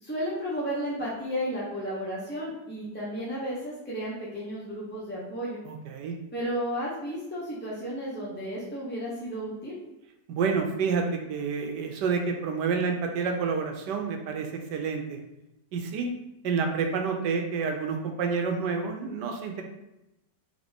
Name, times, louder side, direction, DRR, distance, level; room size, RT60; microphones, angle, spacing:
voice 1, 0.0-5.6 6.3-9.8, equal, 10° left, -7 dB, 0.6 m, -33 dB
voice 2, 5.6-6.2 10.3-15.2 15.7-16.1 16.4-19.6, right 5 dB, 80° right, 4 dB, 1.3 m, -29 dB
3.9 x 3.4 x 3.5 m, 0.91 s
omnidirectional pair, 1.9 m